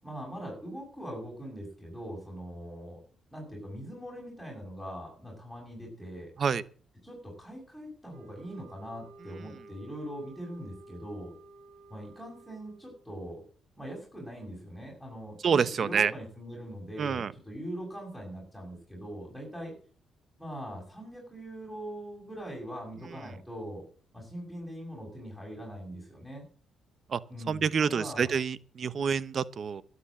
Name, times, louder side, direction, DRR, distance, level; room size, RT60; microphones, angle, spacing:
voice 1, 0.0-3.0 3.3-6.3 7.0-11.3 11.9-13.4 13.8-19.7 20.4-23.9 24.1-26.4 27.3-28.3, equal, 5° right, 6.8 m, -41 dB
sound 1, 8.1-13.0, right 3 dB, 75° right, 5.2 m, -53 dB
voice 2, 15.4-16.1 17.0-17.3 27.1-27.2 27.5-29.8, right 6 dB, 45° right, 0.9 m, -27 dB
12.5 x 8.2 x 8.5 m
cardioid pair, 95°, 0 cm